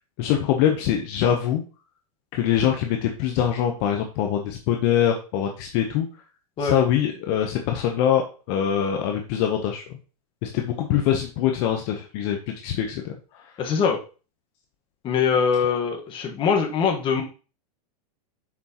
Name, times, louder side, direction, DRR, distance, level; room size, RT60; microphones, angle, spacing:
voice 1, 0.2-1.6 2.3-6.1 6.6-8.2 8.5-9.8 10.4-13.1, left 9 dB, 45° left, 3 dB, 1.0 m, -23 dB
voice 2, 13.6-14.0 15.0-17.2, left 6 dB, 25° left, 2 dB, 1.5 m, -22 dB
7.3 x 6.2 x 3.0 m, 0.36 s
supercardioid pair, 145°, 20 cm